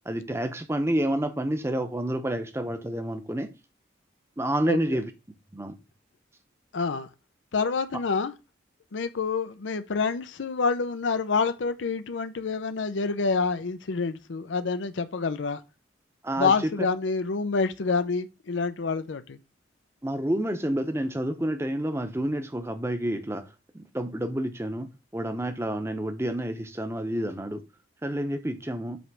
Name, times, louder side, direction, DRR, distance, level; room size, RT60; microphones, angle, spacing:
voice 1, 0.1-3.5 4.4-5.1 5.5-5.8 16.2-16.5 20.0-23.5 23.7-27.6 28.0-29.0, right 1 dB, 15° right, 0.8 m, -29 dB
voice 2, 4.7-5.0 6.7-7.1 7.5-8.3 8.9-15.6 16.4-19.4, left 4 dB, 85° left, 0.6 m, -27 dB
7.9 x 3.3 x 6.1 m
head